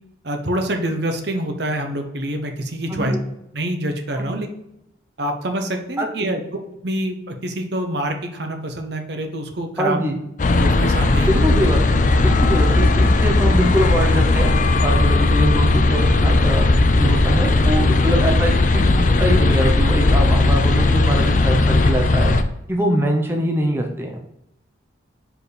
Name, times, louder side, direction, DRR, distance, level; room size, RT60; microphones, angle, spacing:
voice 1, 0.2-3.1 3.5-4.5 5.2-6.4 6.8-10.0 10.6-11.4, right 1 dB, 60° right, 5 dB, 0.9 m, -26 dB
voice 2, 6.0-6.3 9.8-10.2 11.3-14.5 14.8-22.3 22.7-24.2, equal, 10° right, 1 dB, 0.7 m, -23 dB
sound 1, 10.4-22.4, left 2 dB, 40° left, 0.4 m, -16 dB
5.1 x 4.6 x 4.1 m, 0.81 s
head